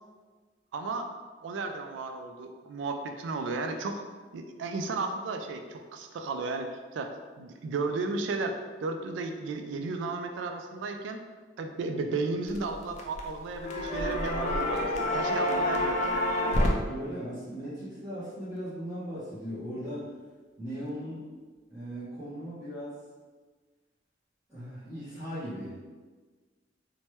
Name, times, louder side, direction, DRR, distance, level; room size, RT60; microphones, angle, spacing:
voice 1, 0.7-1.1 1.4-4.0 4.3-11.2 11.6-16.4, right 3 dB, 85° right, 6 dB, 0.3 m, -34 dB
sound 1, 12.5-13.3 13.6-16.7, left 1 dB, 40° left, 0.3 m, -28 dB
voice 2, 16.9-20.1 20.6-21.2 21.7-23.0 24.5-25.7, equal, 10° right, -15 dB, 0.8 m, -38 dB
2.9 x 2.1 x 3.1 m, 1.4 s
head